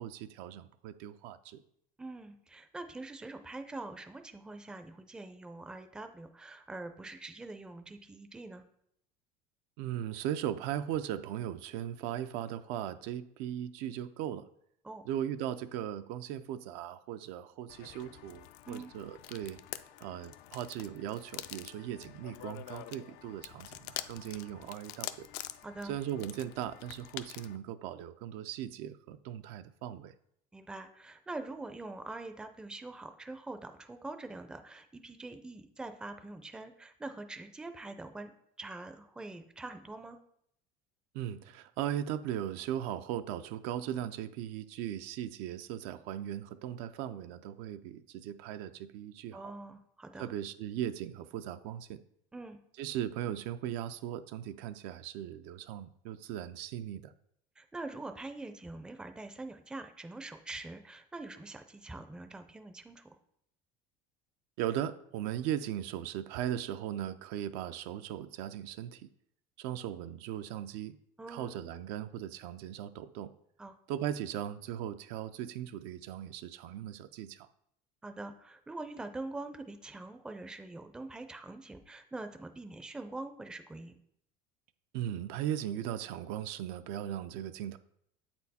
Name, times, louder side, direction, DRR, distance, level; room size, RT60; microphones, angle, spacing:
voice 1, 0.0-1.6 9.8-14.5 15.0-19.6 20.0-25.3 25.8-30.1 41.1-49.5 50.2-52.0 52.8-57.1 64.6-69.1 69.6-71.0 71.3-73.3 73.9-77.5 84.9-87.8, right 11 dB, 75° right, 11 dB, 0.5 m, -38 dB
voice 2, 2.0-8.6 14.8-15.0 18.7-18.9 25.6-25.9 30.5-38.3 38.6-40.2 49.3-50.3 52.3-52.6 57.6-63.1 71.2-71.6 73.6-73.8 78.0-83.9, right 2 dB, 5° right, 8 dB, 0.4 m, -44 dB
sound 1, 17.7-27.6, left 14 dB, 70° left, 0.4 m, -46 dB
8.0 x 4.4 x 4.1 m, 0.72 s
cardioid pair, 145°, 17 cm